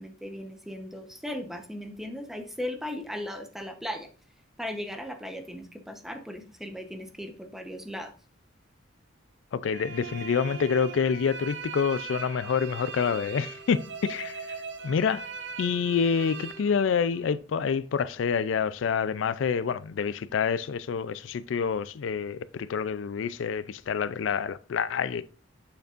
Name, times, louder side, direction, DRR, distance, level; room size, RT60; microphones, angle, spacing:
voice 1, 0.0-4.1 4.6-8.1, left 1 dB, ahead, 0.8 m, -37 dB
voice 2, 9.5-14.6 14.8-15.3 15.6-25.2, left 6 dB, 75° left, 0.4 m, -27 dB
sound 1, 9.6-17.4, right 6 dB, 65° right, 0.8 m, -40 dB
7.9 x 6.8 x 2.5 m
head